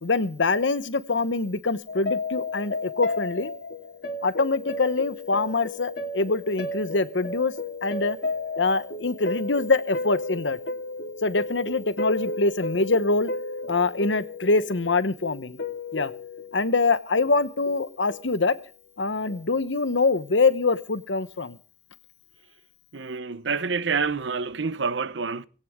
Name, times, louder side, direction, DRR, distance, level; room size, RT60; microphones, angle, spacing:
voice 1, 0.0-3.5 4.2-7.5 7.8-8.2 8.6-10.6 11.2-13.3 13.7-15.6 15.9-16.1 16.5-18.5 19.0-21.6, left 3 dB, 90° left, 1.1 m, -24 dB
sound 1, 1.9-16.7 17.2-17.8 18.1-18.3 19.3-19.5, left 2 dB, 65° left, 2.8 m, -33 dB
voice 2, 22.9-25.5, right 5 dB, 80° right, 0.8 m, -27 dB
17.5 x 17.0 x 3.7 m
head